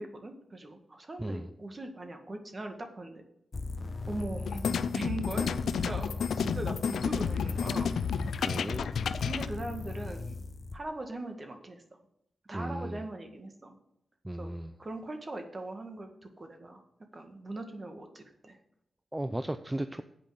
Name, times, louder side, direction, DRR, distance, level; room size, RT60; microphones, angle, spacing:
voice 1, 0.0-3.2 4.1-8.5 9.2-10.4 10.7-11.8 12.5-13.8 14.4-14.5 14.8-16.1 16.4-16.8 17.1-18.6, right 2 dB, 40° right, 5 dB, 1.7 m, -40 dB
sound 1, 3.5-10.8, left 3 dB, 50° left, 0.9 m, -38 dB
sound 2, 4.4-9.5, left 7 dB, 80° left, 0.4 m, -31 dB
voice 2, 8.4-8.9 12.5-13.0 14.2-14.7 19.1-20.0, right 1 dB, 15° right, 9 dB, 0.5 m, -35 dB
8.5 x 5.2 x 7.7 m, 0.78 s
supercardioid pair, 45°, 0 cm